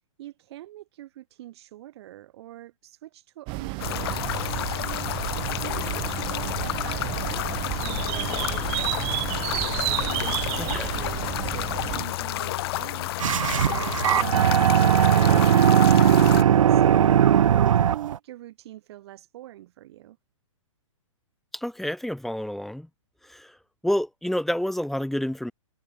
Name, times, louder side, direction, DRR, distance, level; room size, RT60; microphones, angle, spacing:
voice 1, 0.2-5.0 5.6-9.1 10.1-13.1 13.6-17.2 17.7-20.2, right 14 dB, 50° right, 5.9 m, -44 dB
sound 1, 3.5-12.1, right 27 dB, 30° right, 0.8 m, -31 dB
sound 2, 3.8-16.4, left 16 dB, 50° left, 2.6 m, -30 dB
sound 3, 13.2-18.2, right 9 dB, 75° right, 0.6 m, -19 dB
voice 2, 21.5-22.9 23.2-23.6 23.8-25.5, equal, ahead, 0.7 m, -29 dB
hypercardioid pair, 130°, 17 cm